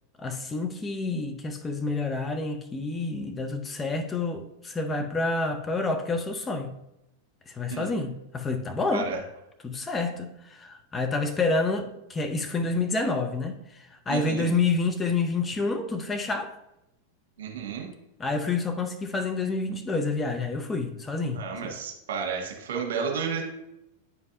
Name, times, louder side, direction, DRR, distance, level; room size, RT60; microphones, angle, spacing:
voice 1, 0.2-6.7 7.5-9.1 9.6-16.5 18.2-21.7, left 3 dB, 15° left, 0.7 m, -28 dB
voice 2, 14.1-14.5 17.4-17.9 21.3-23.4, right 6 dB, 60° right, 1.6 m, -31 dB
9.2 x 5.3 x 2.6 m
figure-of-eight pair, 90°, 0 cm